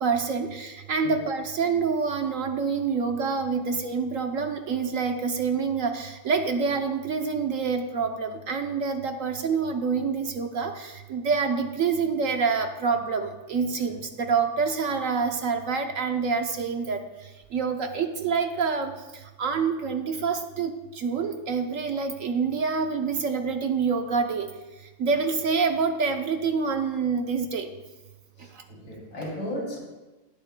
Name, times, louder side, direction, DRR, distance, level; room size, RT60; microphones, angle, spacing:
voice 1, 0.0-17.0 17.5-18.9 19.4-24.5 25.0-27.7, right 5 dB, 60° right, 5 dB, 1.0 m, -27 dB
voice 2, 28.4-29.8, equal, 80° left, -3 dB, 3.7 m, -35 dB
19.0 x 9.0 x 2.2 m, 1.1 s
omnidirectional pair, 1.8 m